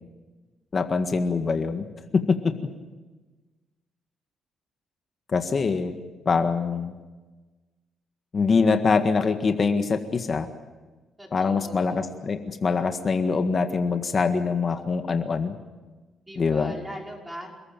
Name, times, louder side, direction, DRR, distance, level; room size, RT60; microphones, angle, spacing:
voice 1, 0.7-1.9 2.1-2.4 5.3-5.9 6.2-7.0 8.3-10.5 11.3-15.6 16.4-16.7, left 4 dB, 40° left, 7 dB, 1.7 m, -24 dB
voice 2, 11.2-12.0 14.7-14.9 16.3-17.5, equal, 10° right, 0 dB, 5.6 m, -40 dB
27.5 x 14.0 x 9.0 m, 1.2 s
cardioid pair, 90°, 0 cm